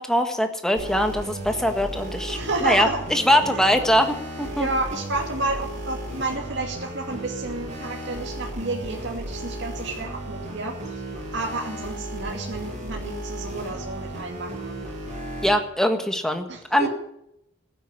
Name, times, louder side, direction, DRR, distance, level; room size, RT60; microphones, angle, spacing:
voice 1, 0.0-4.7 15.4-16.9, equal, 5° left, 6 dB, 1.5 m, -22 dB
sound 1, 0.8-15.6, right 1 dB, 40° right, 7.3 m, -35 dB
voice 2, 2.3-3.0 3.5-3.6 4.5-11.0 11.3-14.8 16.5-16.9, right 2 dB, 60° right, 0 dB, 2.5 m, -30 dB
15.5 x 9.2 x 9.8 m, 0.77 s
head